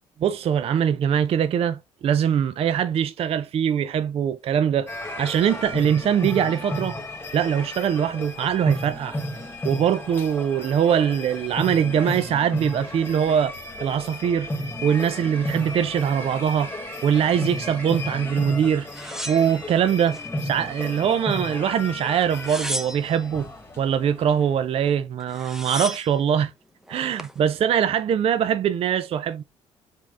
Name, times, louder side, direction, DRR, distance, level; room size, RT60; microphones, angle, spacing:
voice 1, 0.2-4.9 5.2-7.0 7.3-9.2 9.6-14.5 14.8-16.7 17.0-18.9 19.3-23.5 23.8-26.5 26.9-29.4, right 8 dB, 45° right, 0.4 m, -22 dB
sound 1, 4.9-24.6, left 1 dB, 15° left, 1.5 m, -33 dB
sound 2, 18.9-20.3 20.7-21.5 22.2-23.3 24.9-25.0 25.2-26.2 26.9-27.4, equal, 5° right, 0.7 m, -34 dB
5.0 x 4.3 x 2.4 m
hypercardioid pair, 55°, 14 cm